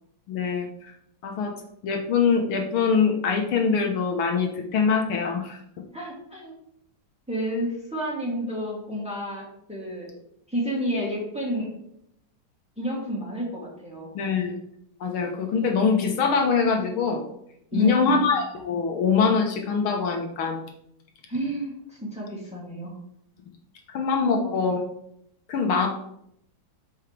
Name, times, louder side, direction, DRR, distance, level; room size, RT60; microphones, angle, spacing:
voice 1, 0.3-0.9 1.2-1.5 1.8-5.6 14.1-14.6 15.0-17.2 17.7-20.6 23.9-24.8 25.5-25.9, left 5 dB, 80° left, 2 dB, 1.9 m, -23 dB
voice 2, 5.9-6.5 7.3-10.1 10.5-11.7 12.8-14.1 17.7-18.3 21.3-22.9 24.3-24.6, right 1 dB, 5° right, -4 dB, 2.6 m, -30 dB
12.5 x 5.0 x 3.3 m, 0.74 s
omnidirectional pair, 2.3 m